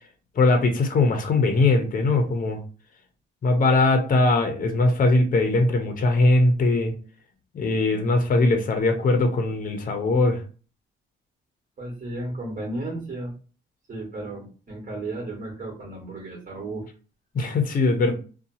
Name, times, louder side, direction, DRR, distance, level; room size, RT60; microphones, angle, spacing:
voice 1, 0.4-2.6 3.4-7.0 7.5-10.4 17.3-18.1, left 2 dB, 45° left, 5 dB, 0.7 m, -21 dB
voice 2, 11.8-13.3 13.9-16.9, right 2 dB, 40° right, 0 dB, 1.4 m, -34 dB
2.7 x 2.3 x 2.7 m, 0.37 s
cardioid pair, 90°, 20 cm